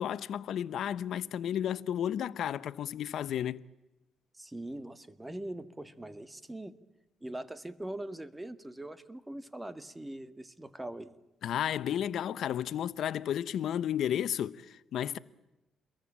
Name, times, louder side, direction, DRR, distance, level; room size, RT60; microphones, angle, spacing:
voice 1, 0.0-3.6 11.4-15.2, left 10 dB, 70° left, 0.9 m, -32 dB
voice 2, 4.3-6.8 7.2-11.2, right 1 dB, 10° right, 1.9 m, -42 dB
29.0 x 22.5 x 8.8 m
cardioid pair, 90°, 0 cm